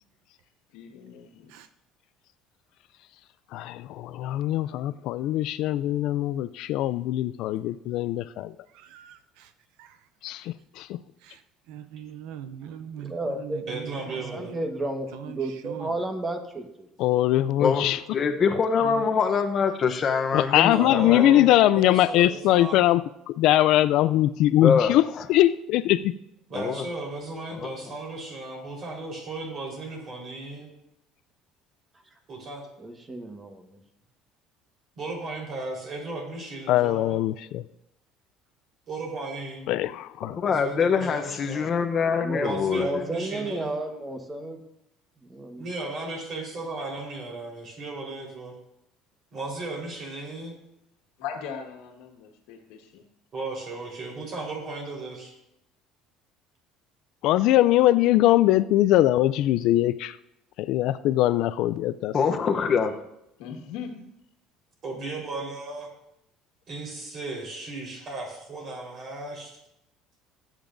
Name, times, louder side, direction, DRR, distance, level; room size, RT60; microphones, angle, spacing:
voice 1, 0.7-1.5 51.2-53.0 63.4-64.0, left 7 dB, 85° left, 3 dB, 1.6 m, -39 dB
voice 2, 3.5-8.5 10.2-11.0 17.0-18.0 20.3-25.0 25.3-26.1 36.7-37.6 39.7-40.4 57.2-60.2 60.6-62.1, left 14 dB, 65° left, 15 dB, 0.3 m, -22 dB
voice 3, 8.7-9.5 9.8-10.0 11.2-11.4 11.7-14.6 15.1-16.0 18.8-19.1, right 9 dB, 80° right, 11 dB, 0.6 m, -41 dB
voice 4, 13.0-13.6 14.3-16.9 32.8-33.8 42.2-42.5 42.8-44.6 45.3-45.6, right 2 dB, 15° right, 5 dB, 1.3 m, -32 dB
voice 5, 13.7-14.5 20.7-22.8 26.5-30.7 32.3-32.6 35.0-37.2 38.9-39.7 40.5-41.7 42.4-43.8 45.6-48.5 49.3-50.5 53.3-55.3 64.8-65.9 66.7-69.6, right 2 dB, 40° right, 0 dB, 4.1 m, -35 dB
voice 6, 17.6-21.5 24.6-25.2 26.5-26.8 27.6-27.7 40.4-43.0 62.1-63.0, left 6 dB, 35° left, 6 dB, 0.8 m, -24 dB
18.0 x 9.0 x 2.6 m, 0.84 s
cardioid pair, 130°, 0 cm